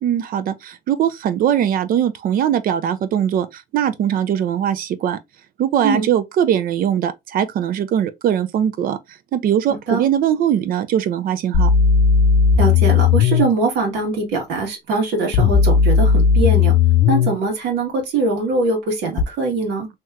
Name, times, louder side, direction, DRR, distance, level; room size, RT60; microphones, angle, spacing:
voice 1, 0.0-5.2 5.6-9.0 9.3-11.7, right 9 dB, 60° right, 0.5 m, -20 dB
sound 1, 11.5-13.5 15.3-17.3 19.2-19.3, left 6 dB, 65° left, 0.5 m, -15 dB
voice 2, 12.6-16.7 17.1-19.9, right 3 dB, 85° right, 1.5 m, -22 dB
3.2 x 2.9 x 2.3 m
cardioid pair, 110°, 17 cm